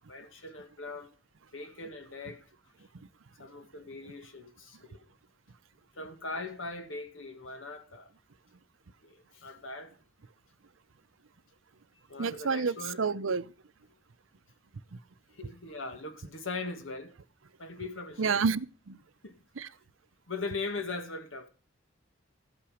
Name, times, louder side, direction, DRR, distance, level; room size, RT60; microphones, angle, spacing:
voice 1, 0.1-1.1 1.5-2.4 3.4-5.0 6.0-8.1 9.0-9.9 12.1-13.0 15.3-17.1 17.6-18.5 19.2-19.4 20.3-21.5, left 3 dB, 80° left, 1.9 m, -40 dB
voice 2, 12.2-13.5 14.9-15.0 18.2-19.0 19.6-19.7, right 5 dB, 80° right, 0.7 m, -29 dB
14.0 x 8.8 x 4.9 m
head